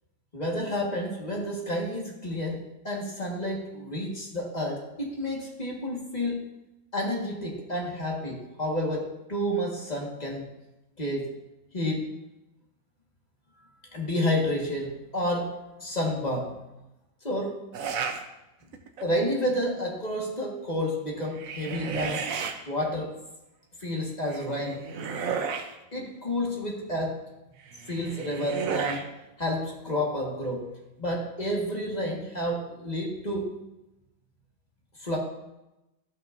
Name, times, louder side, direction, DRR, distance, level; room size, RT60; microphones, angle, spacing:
voice 1, 0.3-6.5 6.9-10.5 11.0-11.3 11.7-12.1 13.9-15.5 15.8-16.6 17.2-17.6 19.0-22.2 22.7-23.1 23.8-24.9 25.9-27.2 27.9-29.1 29.4-30.7 31.0-33.5 35.0-35.2, left 1 dB, 25° left, -2 dB, 1.5 m, -30 dB
sound 1, 17.7-18.2 18.7-19.2 21.2-22.5 24.3-25.7 27.7-29.1, right 6 dB, 60° right, 0.9 m, -32 dB
13.5 x 5.7 x 2.6 m, 0.95 s
omnidirectional pair, 2.1 m